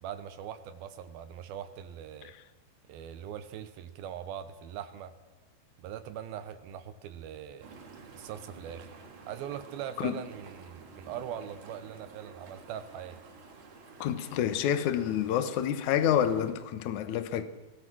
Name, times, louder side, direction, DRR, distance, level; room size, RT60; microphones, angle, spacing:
voice 1, 0.0-2.3 2.9-5.1 5.8-7.7 8.1-8.9 9.3-13.2, right 9 dB, 85° right, 2.8 m, -41 dB
sound 1, 7.6-16.5, right 4 dB, 50° right, 3.7 m, -50 dB
voice 2, 14.0-17.4, left 10 dB, 65° left, 2.4 m, -28 dB
23.5 x 17.5 x 6.2 m
omnidirectional pair, 4.2 m